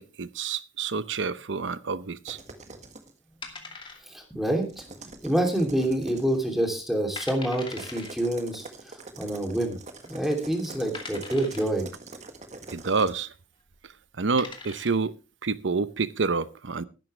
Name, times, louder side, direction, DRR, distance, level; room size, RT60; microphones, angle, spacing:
voice 1, 0.0-2.4 12.7-13.3 14.2-15.1 15.4-16.9, right 4 dB, 75° right, 0.7 m, -28 dB
sound 1, 2.3-3.1 4.6-6.4 7.7-13.1, right 3 dB, 40° right, 1.7 m, -44 dB
sound 2, 3.4-4.4 4.6-4.7 5.3-5.8 6.1-6.2 6.8-6.9 7.2-8.1 9.2-9.3 10.0-10.1 10.9-11.8 13.6-13.8 14.2-15.1, left 4 dB, 25° left, 2.4 m, -41 dB
voice 2, 4.1-8.6 9.2-9.8 10.1-11.9, right 1 dB, ahead, 3.0 m, -27 dB
14.0 x 12.5 x 3.3 m
head